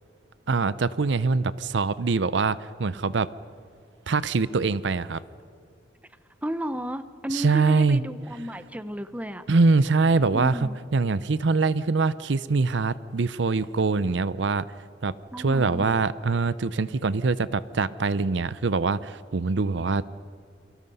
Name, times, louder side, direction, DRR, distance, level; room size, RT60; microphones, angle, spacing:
voice 1, 0.5-3.3 4.1-5.2 7.3-8.0 9.5-14.7 15.0-20.1, right 4 dB, 65° right, 17 dB, 0.6 m, -24 dB
voice 2, 6.4-9.4 10.3-10.8 15.3-15.9, equal, 5° right, 12 dB, 0.7 m, -33 dB
28.5 x 23.5 x 5.5 m, 2.3 s
head